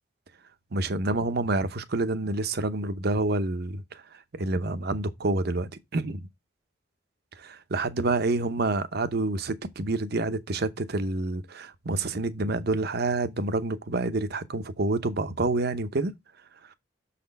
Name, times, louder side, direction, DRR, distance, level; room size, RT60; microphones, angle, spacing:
voice 1, 0.7-4.0 4.3-6.2 7.4-16.1, right 2 dB, 60° right, 0.8 m, -28 dB
6.6 x 4.2 x 5.3 m
head